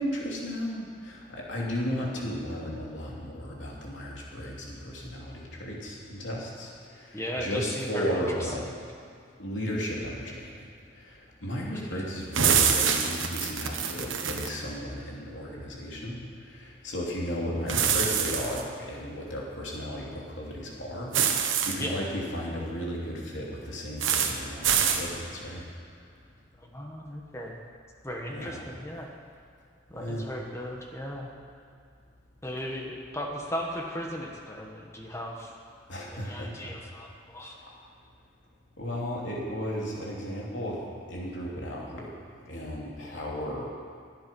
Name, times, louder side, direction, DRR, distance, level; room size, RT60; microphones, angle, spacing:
voice 1, 0.0-8.7 9.4-10.7 10.9-25.7 28.3-28.6 29.9-30.3 35.9-36.7 38.8-42.1 42.5-43.7, equal, 75° left, -3 dB, 3.1 m, -34 dB
voice 2, 7.1-8.5 11.9-12.0 21.8-22.0 26.6-27.6 28.0-29.1 29.9-31.3 32.4-35.5 36.1-37.6 43.0-43.2, equal, 15° left, 0 dB, 1.3 m, -36 dB
sound 1, 12.3-14.5 17.7-18.6 21.1-21.7 24.0-24.3 24.6-25.0, right 7 dB, 90° right, 1.3 m, -25 dB
18.5 x 11.5 x 5.4 m, 2.3 s
head